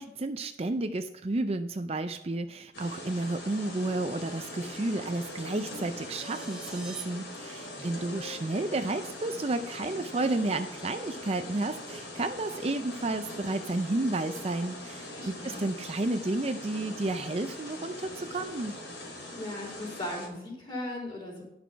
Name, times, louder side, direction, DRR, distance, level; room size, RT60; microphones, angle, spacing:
voice 1, 0.0-18.8, right 2 dB, 35° right, 8 dB, 0.5 m, -31 dB
sound 1, 2.7-20.3, left 1 dB, 75° left, 3.6 m, -42 dB
Wind instrument woodwind instrument, 4.2-7.1 7.4-11.7, left 1 dB, 50° left, 1.4 m, -52 dB
sound 2, 5.5-7.0, right 3 dB, 5° right, 1.4 m, -48 dB
voice 2, 15.1-15.6 19.4-21.4, left 1 dB, 25° left, -3 dB, 3.8 m, -38 dB
11.5 x 6.1 x 5.7 m, 0.86 s
head